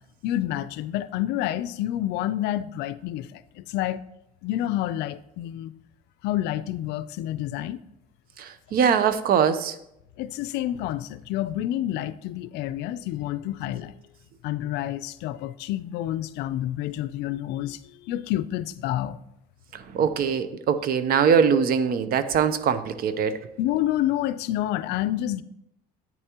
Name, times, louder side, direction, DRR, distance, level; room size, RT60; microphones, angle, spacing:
voice 1, 0.2-4.0 4.4-5.7 6.2-7.8 10.2-14.0 14.4-19.2 23.6-25.4, left 13 dB, 90° left, 0.4 m, -28 dB
voice 2, 8.4-9.8 19.7-23.4, right 7 dB, 60° right, 0.7 m, -22 dB
10.0 x 8.6 x 2.9 m
cardioid pair, 110°, 17 cm